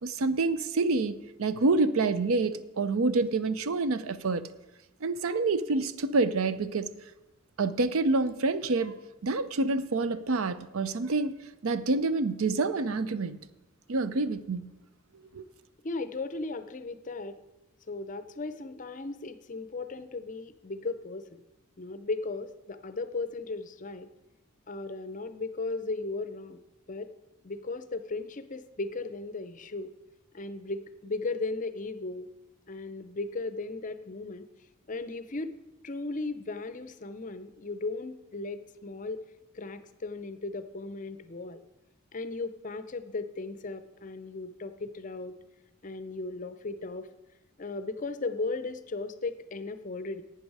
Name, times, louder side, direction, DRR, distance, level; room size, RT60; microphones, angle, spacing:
voice 1, 0.0-4.5 5.0-6.9 7.6-8.9 9.2-11.3 11.6-13.4 13.9-14.7 15.3-15.4, right 3 dB, 80° right, 0.6 m, -27 dB
voice 2, 15.8-17.4 17.9-21.4 21.8-24.1 24.7-26.6 26.9-27.1 27.4-29.9 30.3-32.3 32.7-34.5 34.9-35.5 35.8-39.2 39.5-41.6 42.1-45.3 45.8-47.1 47.6-50.2, left 3 dB, 35° left, 0.5 m, -36 dB
11.5 x 8.8 x 4.7 m
head